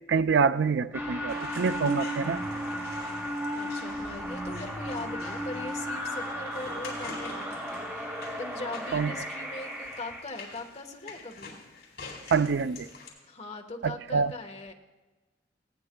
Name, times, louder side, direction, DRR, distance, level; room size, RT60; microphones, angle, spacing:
voice 1, 0.1-2.4 8.9-9.1 12.3-12.9 13.8-14.3, right 5 dB, 80° right, 13 dB, 0.4 m, -26 dB
sound 1, 0.9-10.2, equal, 15° right, 2.2 m, -35 dB
sound 2, 1.3-13.1, left 4 dB, 70° left, 4.1 m, -47 dB
voice 2, 3.5-11.5 13.3-14.7, left 2 dB, 40° left, 4 dB, 1.2 m, -41 dB
19.0 x 17.5 x 2.2 m, 1.2 s
head